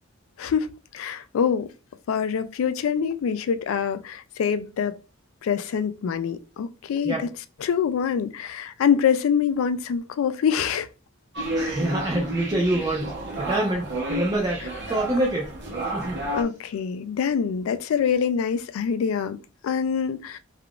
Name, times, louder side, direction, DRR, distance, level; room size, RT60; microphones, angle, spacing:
voice 1, 0.4-1.7 2.1-5.0 5.4-7.3 7.6-10.9 16.3-20.4, left 7 dB, 75° left, 0.3 m, -25 dB
sound 1, 11.3-16.4, right 1 dB, 55° right, 0.7 m, -31 dB
voice 2, 11.5-15.5 15.9-16.2, right 1 dB, 20° right, 0.4 m, -26 dB
3.5 x 2.4 x 2.3 m
head